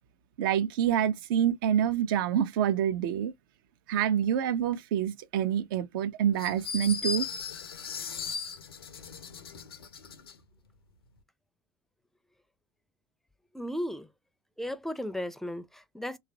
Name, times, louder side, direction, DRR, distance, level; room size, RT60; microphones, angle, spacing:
voice 1, 0.4-3.3 3.9-7.2, right 9 dB, 65° right, 0.6 m, -27 dB
sound 1, 6.4-10.4, left 6 dB, 80° left, 0.5 m, -37 dB
voice 2, 13.5-14.1 14.6-16.2, equal, ahead, 0.5 m, -35 dB
3.0 x 2.4 x 2.7 m
figure-of-eight pair, 65°, 12 cm